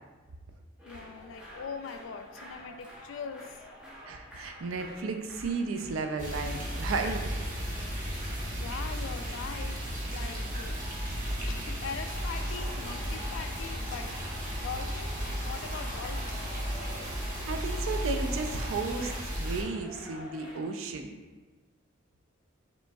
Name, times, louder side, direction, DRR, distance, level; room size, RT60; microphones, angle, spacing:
voice 1, 0.8-3.6 8.6-10.8 11.5-14.2 14.6-16.4, left 5 dB, 65° left, 7 dB, 0.3 m, -41 dB
sound 1, 0.8-20.7, equal, 5° right, 0.8 m, -51 dB
voice 2, 4.1-7.3 17.2-21.1, right 4 dB, 80° right, 5 dB, 0.4 m, -34 dB
sound 2, 6.2-19.6, equal, 40° right, 0.9 m, -34 dB
sound 3, 12.0-19.2, left 1 dB, 40° left, 1.0 m, -46 dB
5.1 x 3.1 x 2.3 m, 1.3 s
head